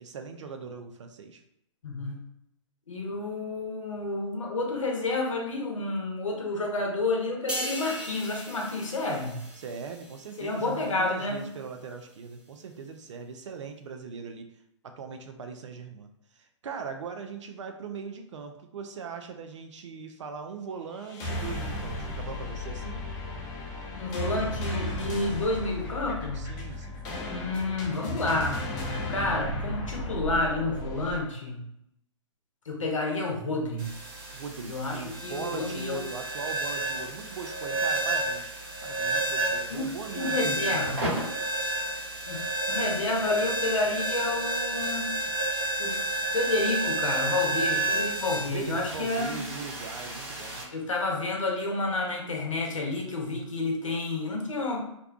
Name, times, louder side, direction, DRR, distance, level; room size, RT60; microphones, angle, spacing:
voice 1, 0.0-1.4 9.6-14.5 14.8-16.1 16.4-23.0 26.3-27.0 34.3-38.5 38.8-41.6 48.4-50.6, right 5 dB, 70° right, 6 dB, 0.4 m, -40 dB
voice 2, 1.8-2.2 2.9-9.4 10.4-11.4 24.0-26.5 27.3-28.6 29.1-31.7 32.7-33.9 34.7-36.0 39.7-41.1 42.3-45.1 45.8-49.4 50.7-54.8, left 2 dB, 80° left, 0 dB, 0.8 m, -30 dB
sound 1, 7.5-11.0 11.4-11.6, right 1 dB, 5° right, 0.3 m, -39 dB
sound 2, 21.0-31.2, left 1 dB, 35° left, 0.7 m, -34 dB
sound 3, 33.8-50.6, right 2 dB, 45° right, 1.3 m, -31 dB
2.5 x 2.1 x 2.4 m, 0.80 s
figure-of-eight pair, 120°, 16 cm